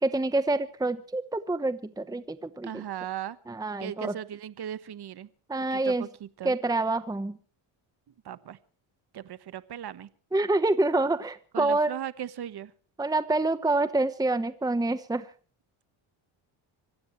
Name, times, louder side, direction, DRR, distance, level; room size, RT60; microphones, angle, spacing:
voice 1, 0.0-2.8 3.5-4.1 5.5-6.1 6.4-7.4 10.3-11.9 13.0-15.3, right 2 dB, 5° right, 12 dB, 1.0 m, -27 dB
voice 2, 2.6-3.4 3.8-5.3 5.7-6.5 8.1-8.6 9.1-10.1 11.5-12.7, right 10 dB, 50° right, 14 dB, 1.3 m, -38 dB
26.0 x 16.5 x 3.1 m, 0.38 s
cardioid pair, 95°, 50 cm